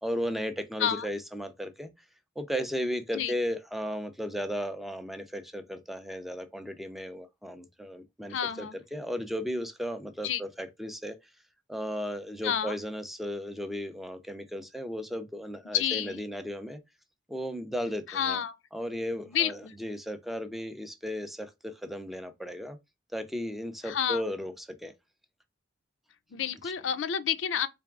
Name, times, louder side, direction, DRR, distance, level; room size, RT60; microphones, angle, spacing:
voice 1, 0.0-1.9 2.4-11.2 11.7-16.8 17.3-18.4 18.7-22.8 23.1-24.9 26.6-26.7, equal, ahead, 0.4 m, -35 dB
voice 2, 8.3-8.8 10.2-10.4 12.4-12.7 15.7-16.2 18.1-18.5 19.3-19.7 23.8-24.2 26.3-27.7, left 9 dB, 70° left, 0.4 m, -29 dB
3.8 x 3.4 x 2.4 m
head